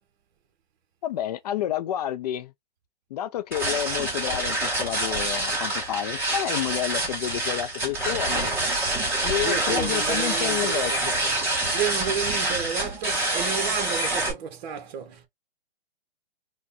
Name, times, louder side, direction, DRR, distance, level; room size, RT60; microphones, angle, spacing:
voice 1, 1.0-2.5 3.1-8.5 9.2-11.2, left 12 dB, 40° left, 0.5 m, -30 dB
sound 1, 3.5-14.3, right 2 dB, 5° right, 2.0 m, -26 dB
voice 2, 9.4-11.4 11.7-15.3, right 7 dB, 50° right, 0.9 m, -32 dB
4.9 x 2.2 x 2.7 m
hypercardioid pair, 125°, 30 cm